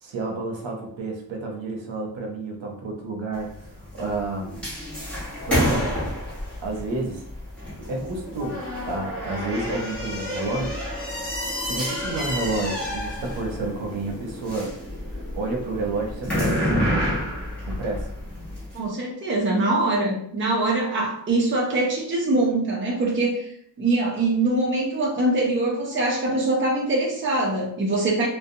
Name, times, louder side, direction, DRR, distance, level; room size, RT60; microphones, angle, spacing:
voice 1, 0.0-4.7 5.5-6.0 6.6-7.2 7.8-10.8 11.2-11.3 11.6-14.7 15.1-17.2 17.6-18.1, right 2 dB, 80° right, 0 dB, 0.7 m, -30 dB
sound 1, 3.3-18.7, equal, ahead, 0.9 m, -29 dB
voice 2, 18.7-23.5 23.8-28.3, right 2 dB, 25° right, -2 dB, 0.5 m, -23 dB
2.5 x 2.2 x 2.6 m, 0.68 s
wide cardioid pair, 165°, 45 cm